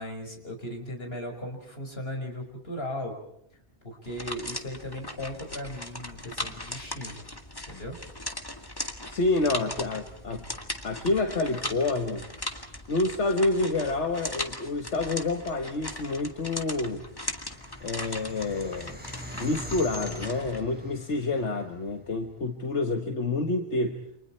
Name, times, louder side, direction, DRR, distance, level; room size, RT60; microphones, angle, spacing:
voice 1, 0.0-3.2 3.8-7.2 7.7-8.0, left 1 dB, 60° left, 3 dB, 5.7 m, -37 dB
sound 1, 4.0-20.6, left 1 dB, 20° left, 2.0 m, -38 dB
voice 2, 9.1-10.4 10.8-12.3 12.9-17.0 17.8-19.0 19.4-24.0, left 2 dB, 80° left, 5 dB, 1.9 m, -28 dB
sound 2, 16.9-22.3, left 2 dB, 10° right, 5.3 m, -42 dB
29.5 x 27.0 x 4.5 m, 0.73 s
omnidirectional pair, 1.2 m